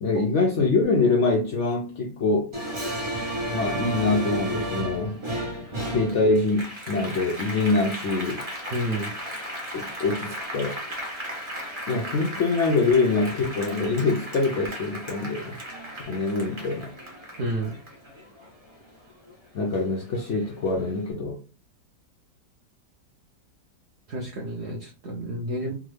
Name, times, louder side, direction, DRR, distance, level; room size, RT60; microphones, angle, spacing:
voice 1, 0.0-2.5 3.5-5.2 5.9-8.5 9.7-10.8 11.9-15.6 16.1-16.9 19.5-21.4, left 3 dB, 90° left, 0.6 m, -24 dB
Applause, 2.5-19.3 19.7-20.9, equal, 25° right, 0.7 m, -34 dB
voice 2, 8.7-9.1 17.4-17.8 24.1-25.7, right 1 dB, 60° right, 0.7 m, -30 dB
3.5 x 2.1 x 3.2 m
omnidirectional pair, 1.8 m